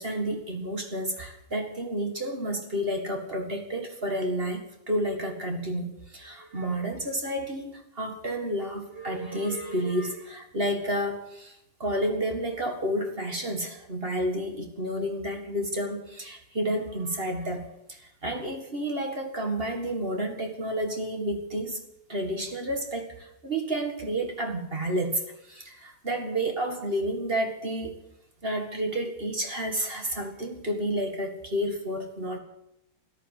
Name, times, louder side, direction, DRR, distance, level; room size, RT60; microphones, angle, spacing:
voice 1, 0.0-21.8 22.1-27.9 28.4-32.4, right 1 dB, 30° right, 4 dB, 2.0 m, -30 dB
13.5 x 11.5 x 9.0 m, 0.83 s
omnidirectional pair, 2.1 m